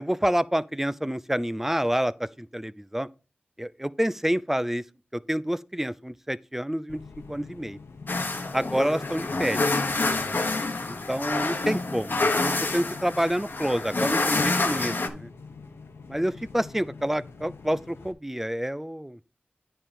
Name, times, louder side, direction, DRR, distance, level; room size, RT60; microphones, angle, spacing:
voice 1, 0.0-2.1 2.4-3.1 3.6-4.8 5.1-7.0 7.3-7.8 8.5-9.7 10.9-15.3 16.1-19.2, equal, 10° right, 0.4 m, -28 dB
sound 1, 6.9-18.1, left 4 dB, 85° left, 0.9 m, -45 dB
sound 2, 8.1-15.1, left 3 dB, 55° left, 1.1 m, -27 dB
sound 3, 9.3-13.6, left 2 dB, 35° left, 2.0 m, -49 dB
9.7 x 3.7 x 5.1 m
cardioid pair, 45°, 4 cm